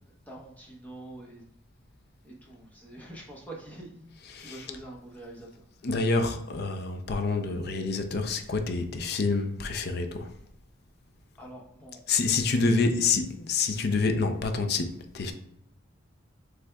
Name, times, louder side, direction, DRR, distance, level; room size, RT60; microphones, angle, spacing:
voice 1, 0.1-1.5 2.2-5.6 11.4-12.9, right 1 dB, 10° left, 0.9 m, -46 dB
voice 2, 4.3-4.6 5.8-10.3 12.1-15.3, left 4 dB, 50° left, 0.5 m, -27 dB
6.1 x 3.4 x 2.3 m
head